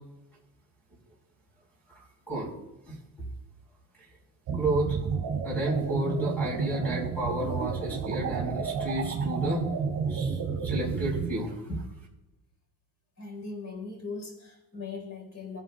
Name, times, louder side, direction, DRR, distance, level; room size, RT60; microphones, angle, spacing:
voice 1, 4.5-5.0 5.4-9.6 10.1-11.8, right 1 dB, 5° left, -4 dB, 4.8 m, -31 dB
sound 1, 4.5-11.3, right 6 dB, 45° right, 2.4 m, -31 dB
voice 2, 13.2-15.6, left 4 dB, 40° left, 1 dB, 4.5 m, -39 dB
23.0 x 11.5 x 2.4 m, 0.98 s
cardioid pair, 165°, 41 cm